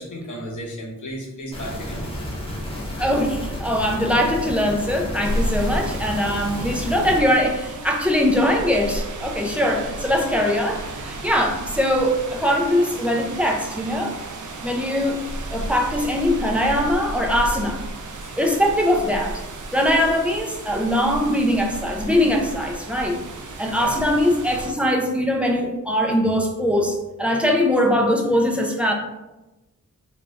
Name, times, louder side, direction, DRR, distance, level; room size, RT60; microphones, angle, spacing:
voice 1, 0.0-2.1 5.3-5.6 18.2-18.3 23.8-24.0, equal, 65° left, -1 dB, 0.9 m, -34 dB
sound 1, 1.5-7.2, left 1 dB, 15° left, 1.0 m, -31 dB
voice 2, 3.0-14.2 14.6-15.2 15.5-17.8 18.4-19.4 19.7-23.2 23.6-28.9, equal, 5° right, 0 dB, 0.5 m, -21 dB
sound 2, 5.2-24.7, right 1 dB, 65° right, 0.5 m, -33 dB
3.2 x 2.4 x 3.5 m, 1.0 s
wide cardioid pair, 95°, 33 cm